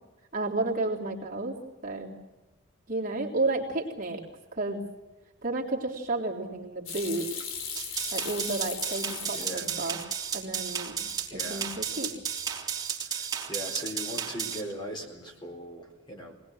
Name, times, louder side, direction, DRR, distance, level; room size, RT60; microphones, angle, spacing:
voice 1, 0.3-1.5 1.8-2.1 2.9-4.2 4.5-4.8 5.4-7.3 8.1-10.0 10.3-11.0 11.3-12.1, right 2 dB, 40° right, -1 dB, 3.6 m, -31 dB
Hands / Sink (filling or washing), 6.9-10.0 10.4-11.2 11.5-12.0 12.2-12.7, left 6 dB, 75° left, 3.1 m, -38 dB
sound 1, 7.8-14.6, right 8 dB, 20° right, 3.6 m, -33 dB
voice 2, 9.3-9.7 11.3-11.7 13.0-13.2 13.5-16.4, equal, 20° left, 1 dB, 4.2 m, -39 dB
25.0 x 19.5 x 7.9 m, 1.1 s
head